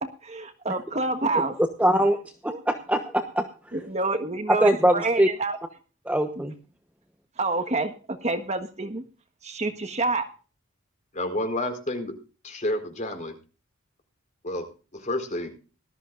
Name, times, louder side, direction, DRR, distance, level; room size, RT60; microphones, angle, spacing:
voice 1, 0.0-1.6 2.5-2.6 3.7-5.6 6.4-6.5 7.4-9.0 9.4-10.3, right 3 dB, 30° right, 7 dB, 1.4 m, -28 dB
voice 2, 1.8-2.2 2.7-3.5 4.6-5.3 6.1-6.5, right 1 dB, 5° right, 5 dB, 1.1 m, -22 dB
voice 3, 11.1-12.2 12.4-13.3 14.4-15.5, left 1 dB, 35° left, 5 dB, 4.4 m, -30 dB
19.5 x 13.5 x 2.6 m, 0.36 s
head